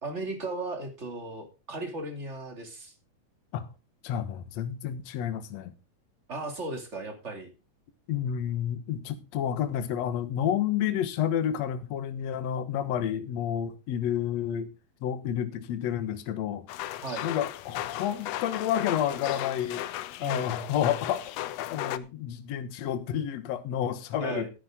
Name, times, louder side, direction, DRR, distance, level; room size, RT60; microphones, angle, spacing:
voice 1, 0.0-2.9 6.3-7.5 17.0-17.3 20.2-20.7 24.2-24.5, right 2 dB, 25° right, 2.4 m, -36 dB
voice 2, 4.0-5.7 8.1-14.7 15.0-16.7 17.2-19.9 20.2-24.5, left 9 dB, 60° left, 2.2 m, -30 dB
sound 1, 16.7-22.0, left 13 dB, 85° left, 1.4 m, -35 dB
13.5 x 10.0 x 3.7 m
omnidirectional pair, 3.7 m